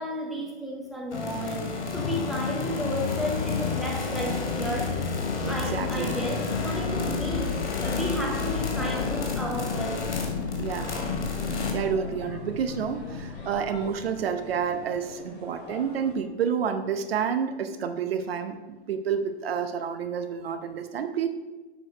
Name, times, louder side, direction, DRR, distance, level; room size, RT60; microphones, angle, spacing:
voice 1, 0.0-5.0 5.5-10.1, equal, ahead, -1 dB, 0.4 m, -33 dB
sound 1, 1.1-11.7, left 4 dB, 75° left, 1.9 m, -31 dB
sound 2, 2.0-15.6 16.1-16.2, left 9 dB, 55° left, 0.5 m, -36 dB
voice 2, 5.4-6.1 10.6-11.0 11.7-21.3, right 7 dB, 60° right, 8 dB, 0.7 m, -29 dB
sound 3, 6.0-16.1, equal, 30° left, 2.4 m, -43 dB
6.5 x 4.9 x 4.9 m, 1.2 s
hypercardioid pair, 135°, 34 cm